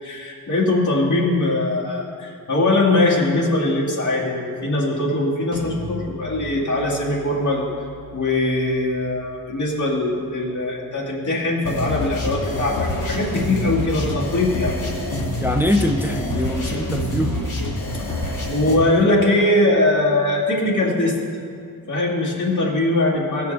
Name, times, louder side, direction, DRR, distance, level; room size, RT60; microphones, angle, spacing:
voice 1, 0.0-7.7 8.1-14.8 18.5-21.2 21.9-23.5, left 2 dB, 55° left, -6 dB, 2.3 m, -21 dB
sound 1, 5.5-11.2, right 1 dB, 45° right, 2.8 m, -40 dB
sound 2, 11.6-18.7, left 2 dB, 85° left, 2.3 m, -26 dB
voice 2, 15.4-17.4 18.2-18.5, left 1 dB, 5° right, 5 dB, 0.4 m, -23 dB
sound 3, 16.3-18.7 19.4-19.5 20.1-20.2, right 6 dB, 90° right, 0.6 m, -35 dB
16.5 x 6.8 x 3.4 m, 2.3 s
wide cardioid pair, 120°, 35 cm